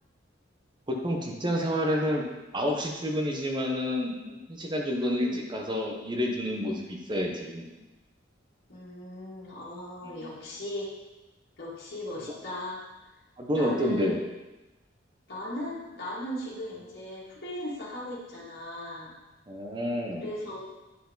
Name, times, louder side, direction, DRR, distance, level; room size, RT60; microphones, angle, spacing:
voice 1, 0.9-2.2 2.5-7.7 10.0-10.3 13.4-14.2 19.5-20.3, equal, 25° right, 1 dB, 0.9 m, -29 dB
voice 2, 8.7-10.9 11.6-12.8 13.5-14.2 15.3-19.1 20.2-20.7, left 1 dB, 55° left, -7 dB, 2.2 m, -38 dB
9.4 x 4.6 x 3.9 m, 1.1 s
head